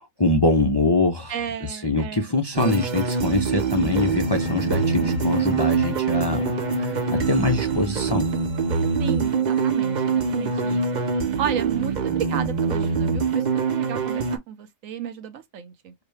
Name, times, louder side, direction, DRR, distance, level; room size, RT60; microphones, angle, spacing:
voice 1, 0.0-1.3 1.7-6.5 6.8-8.3, left 2 dB, 30° left, 0.4 m, -23 dB
voice 2, 1.3-2.3 9.0-10.9 11.4-15.9, right 8 dB, 90° right, 1.2 m, -33 dB
sound 1, 2.5-14.4, right 5 dB, 45° right, 0.7 m, -24 dB
sound 2, 3.8-9.8, left 3 dB, 60° left, 1.3 m, -37 dB
4.8 x 2.2 x 3.2 m
omnidirectional pair, 1.3 m